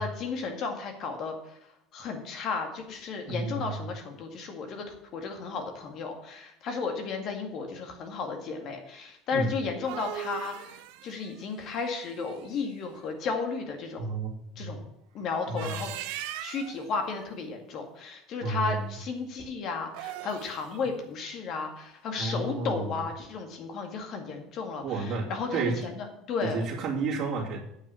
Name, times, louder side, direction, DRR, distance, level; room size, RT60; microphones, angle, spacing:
voice 1, 0.0-1.6 1.9-14.1 14.6-14.8 15.1-15.9 16.4-26.6, left 4 dB, 50° left, 4 dB, 2.1 m, -34 dB
voice 2, 3.3-3.8 9.3-9.5 14.0-14.3 14.6-14.7 15.5-15.8 18.4-18.9 22.2-22.9 24.8-25.3 25.5-25.8 26.4-27.6, right 3 dB, 50° right, -4 dB, 2.3 m, -31 dB
sound 1, 9.6-12.6 15.4-16.9 19.8-20.7, right 13 dB, 75° right, 0.7 m, -40 dB
9.1 x 5.9 x 7.0 m, 0.81 s
supercardioid pair, 120°, 0 cm